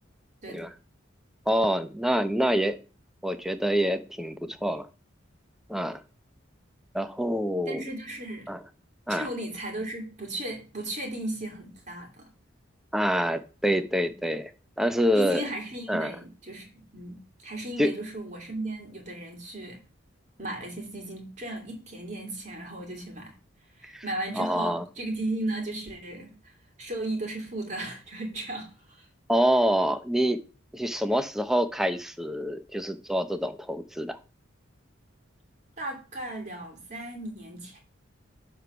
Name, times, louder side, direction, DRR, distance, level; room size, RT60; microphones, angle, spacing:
voice 1, 1.5-2.8 3.2-4.9 5.7-6.0 6.9-7.8 8.5-8.6 9.1-9.3 12.9-14.5 14.8-15.5 15.9-16.2 17.8-17.9 23.8-24.0 24.4-24.8 29.3-30.4 30.7-34.2, equal, ahead, 9 dB, 0.6 m, -26 dB
voice 2, 7.7-8.5 9.1-12.3 13.7-14.1 15.1-19.8 20.4-23.3 23.8-26.5 26.8-29.0 35.8-37.8, right 1 dB, 35° right, 3 dB, 2.8 m, -36 dB
11.0 x 3.7 x 6.8 m, 0.34 s
head